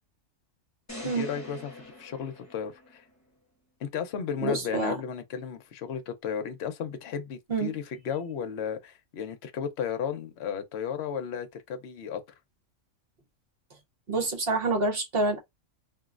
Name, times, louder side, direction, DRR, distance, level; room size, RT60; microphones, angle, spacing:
sound 1, 0.9-3.2, left 1 dB, 15° left, 0.8 m, -44 dB
voice 1, 1.0-3.0 3.8-12.2, left 7 dB, 60° left, 0.8 m, -34 dB
voice 2, 4.4-5.0 7.5-7.8 14.1-15.4, right 2 dB, 50° right, 1.1 m, -27 dB
3.0 x 2.5 x 2.4 m
omnidirectional pair, 1.4 m